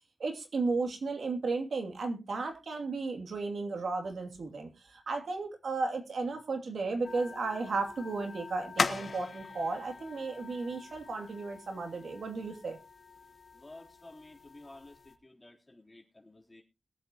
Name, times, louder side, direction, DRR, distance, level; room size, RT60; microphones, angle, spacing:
voice 1, 0.2-12.8, right 3 dB, 80° right, 4 dB, 2.6 m, -34 dB
sound 1, 7.0-15.2, left 4 dB, 60° left, 1.2 m, -40 dB
voice 2, 13.5-16.6, left 2 dB, 25° left, -1 dB, 3.4 m, -53 dB
22.0 x 7.9 x 2.9 m, 0.27 s
wide cardioid pair, 110°, 0 cm